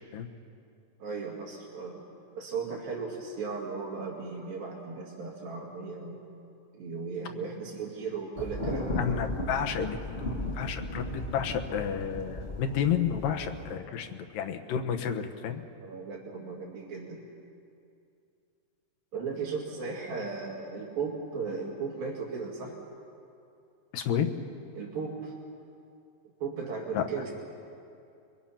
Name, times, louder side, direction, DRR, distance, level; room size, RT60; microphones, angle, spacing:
voice 1, 1.0-2.0 2.4-6.2 6.7-9.0 15.8-17.3 19.1-22.8 24.8-25.3 26.4-27.3, right 5 dB, 75° right, -3 dB, 4.1 m, -36 dB
Thunder, 8.4-13.7, left 1 dB, 30° left, 1.1 m, -35 dB
voice 2, 9.0-14.1 14.3-15.6 23.9-24.3 26.9-27.0, left 8 dB, 75° left, 6 dB, 2.9 m, -31 dB
30.0 x 22.5 x 5.8 m, 2.5 s
omnidirectional pair, 4.1 m